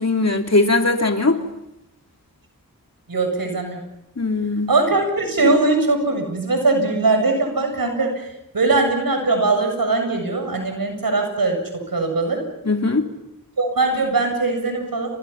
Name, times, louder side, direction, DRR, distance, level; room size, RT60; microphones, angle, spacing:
voice 1, 0.0-1.4 4.2-4.7 12.6-13.0, left 3 dB, 45° left, 4 dB, 3.1 m, -19 dB
voice 2, 3.1-3.8 4.7-8.1 8.5-11.6 11.9-12.4 13.6-15.2, right 3 dB, 80° right, 5 dB, 7.7 m, -20 dB
30.0 x 28.0 x 5.9 m, 0.87 s
cardioid pair, 45°, 35 cm